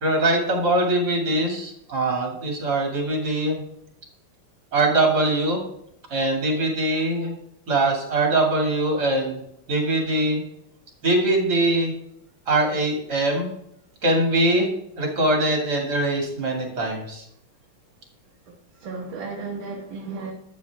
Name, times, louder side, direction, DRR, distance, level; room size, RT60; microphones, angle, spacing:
voice 1, 0.0-3.6 4.7-5.6 6.1-7.4 7.7-9.4 9.7-10.4 11.0-11.9 12.5-13.5 14.0-14.7 15.0-17.2, right 2 dB, 50° right, 1 dB, 2.9 m, -22 dB
voice 2, 18.5-20.3, right 4 dB, 65° right, -1 dB, 2.0 m, -34 dB
11.5 x 8.1 x 3.5 m, 0.75 s
omnidirectional pair, 2.4 m